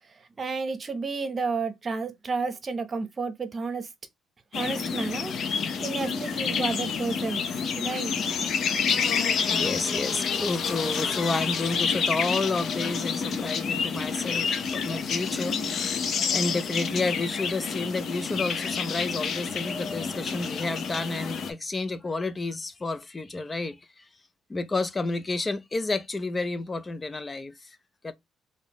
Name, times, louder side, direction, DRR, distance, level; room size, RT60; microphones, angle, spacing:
voice 1, 0.2-3.9 4.5-7.4 7.7-8.1, right 4 dB, 35° right, 0.8 m, -31 dB
sound 1, 4.5-21.5, left 6 dB, 60° left, 0.8 m, -29 dB
voice 2, 9.5-24.1 24.5-27.8 28.0-28.1, left 3 dB, 25° left, 0.5 m, -30 dB
3.6 x 2.6 x 3.0 m
cardioid pair, 95°, 0 cm